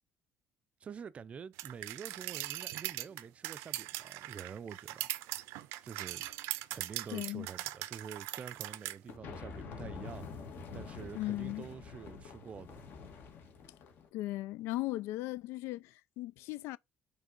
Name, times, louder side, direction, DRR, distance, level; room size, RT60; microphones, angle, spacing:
voice 1, 0.8-5.1 5.8-6.2 6.7-10.2 10.7-12.8, right 6 dB, 30° right, 0.5 m, -47 dB
sound 1, 1.6-9.0, right 17 dB, 85° right, 0.5 m, -40 dB
voice 2, 7.1-7.5 11.1-11.7 14.1-16.8, left 17 dB, 75° left, 0.4 m, -37 dB
sound 2, 9.1-14.1, left 5 dB, 50° left, 1.9 m, -47 dB
6.0 x 3.3 x 5.2 m
cardioid pair, 145°, 4 cm